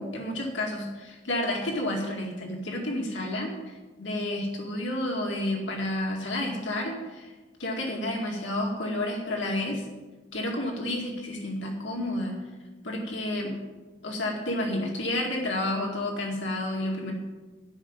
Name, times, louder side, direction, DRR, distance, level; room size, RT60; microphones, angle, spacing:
voice 1, 0.0-7.3 7.6-9.9 10.3-12.4 12.8-13.6 14.0-17.1, left 1 dB, 90° left, 0 dB, 2.2 m, -30 dB
12.5 x 6.0 x 9.0 m, 1.2 s
head